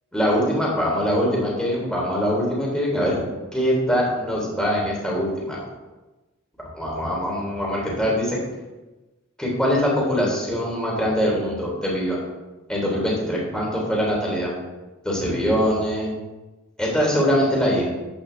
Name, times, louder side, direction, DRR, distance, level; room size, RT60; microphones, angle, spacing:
voice 1, 0.1-3.2 3.5-5.6 6.7-8.4 9.4-12.2 12.7-14.5 15.0-16.1 16.8-17.9, equal, 5° left, -4 dB, 3.3 m, -23 dB
11.5 x 8.5 x 3.4 m, 1.1 s
head